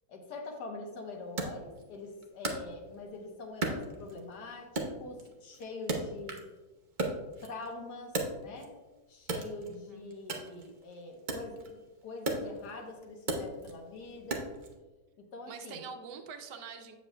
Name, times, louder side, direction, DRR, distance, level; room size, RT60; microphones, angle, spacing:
voice 1, 0.1-6.4 7.4-8.7 9.1-14.4 15.2-15.8, left 3 dB, 70° left, 3 dB, 1.5 m, -44 dB
Wood, 1.4-3.2 3.6-4.4 4.8-6.6 6.9-8.8 9.2-14.7, right 2 dB, 60° right, 0.5 m, -37 dB
voice 2, 9.6-10.1 15.5-17.0, right 5 dB, 75° right, 6 dB, 1.2 m, -45 dB
8.0 x 7.2 x 2.2 m, 1.2 s
omnidirectional pair, 1.9 m